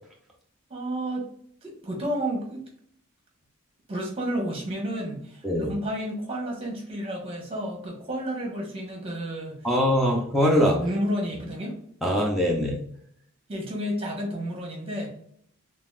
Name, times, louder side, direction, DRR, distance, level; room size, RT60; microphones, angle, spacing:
voice 1, 0.7-1.3 1.6-2.6 3.9-9.6 10.8-11.7 13.5-15.1, equal, 25° right, -1 dB, 1.3 m, -31 dB
voice 2, 9.6-10.8 12.0-12.8, equal, ahead, -3 dB, 0.5 m, -22 dB
3.9 x 3.5 x 2.4 m, 0.67 s
head